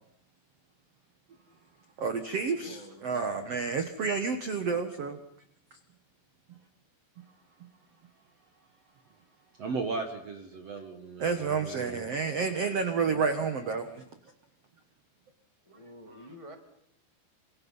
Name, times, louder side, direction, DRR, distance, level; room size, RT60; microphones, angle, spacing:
voice 1, 2.0-5.2 11.2-14.0, right 5 dB, 90° right, 8 dB, 1.3 m, -30 dB
voice 2, 2.6-3.3 10.5-10.6 12.3-13.6 15.6-16.5, equal, 65° left, 5 dB, 0.3 m, -50 dB
voice 3, 9.6-12.0 15.7-15.8 16.1-16.3, right 4 dB, 70° right, 6 dB, 1.5 m, -37 dB
28.0 x 26.0 x 5.6 m, 0.72 s
omnidirectional pair, 5.2 m